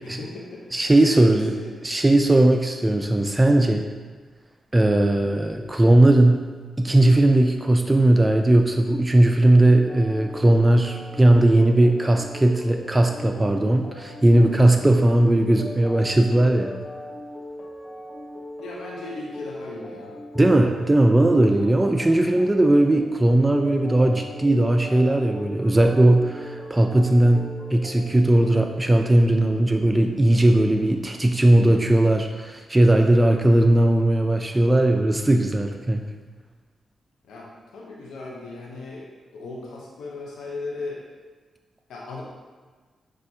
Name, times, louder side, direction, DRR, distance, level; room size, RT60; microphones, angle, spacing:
voice 1, 0.0-0.7 1.0-1.7 18.6-20.1 37.3-41.0 41.9-42.2, left 3 dB, 85° left, -3 dB, 0.6 m, -37 dB
voice 2, 0.7-1.5 1.8-3.9 4.7-6.4 6.8-16.7 20.3-36.0, right 1 dB, 20° right, 4 dB, 0.3 m, -18 dB
sound 1, 9.9-28.8, left 1 dB, 45° left, 0.6 m, -39 dB
6.1 x 2.5 x 2.7 m, 1.4 s
supercardioid pair, 50°, 0 cm